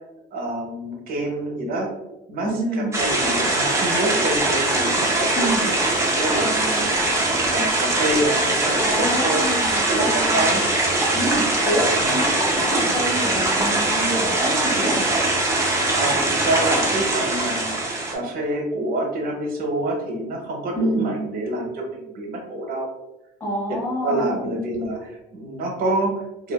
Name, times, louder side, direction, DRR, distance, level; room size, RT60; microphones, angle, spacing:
voice 1, 0.3-1.9 2.3-5.8 6.2-7.2 7.5-9.4 9.9-10.6 12.0-12.4 15.9-17.7 18.1-22.9 24.0-26.5, right 1 dB, 50° right, 0 dB, 0.8 m, -27 dB
voice 2, 2.4-2.9 5.3-5.6 8.8-10.7 11.1-15.1 20.7-21.1 23.4-24.5, right 1 dB, 10° left, -7 dB, 1.0 m, -27 dB
sound 1, 2.9-18.2, right 2 dB, 15° right, 0.5 m, -21 dB
2.4 x 2.3 x 2.2 m, 0.94 s
cardioid pair, 110°, 18 cm